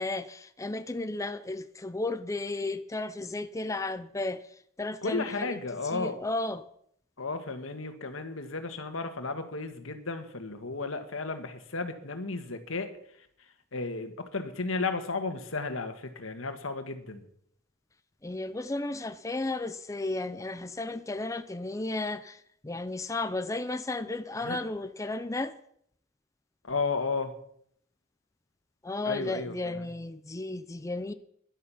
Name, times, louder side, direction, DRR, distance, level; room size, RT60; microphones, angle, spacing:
voice 1, 0.0-4.4 4.8-6.6 18.2-25.5 28.8-31.1, left 2 dB, 15° left, 0.5 m, -34 dB
voice 2, 5.0-6.1 7.2-12.9 13.7-17.2 24.4-24.6 26.6-27.3 29.0-29.9, left 3 dB, 85° left, 1.6 m, -33 dB
13.0 x 11.0 x 5.7 m
head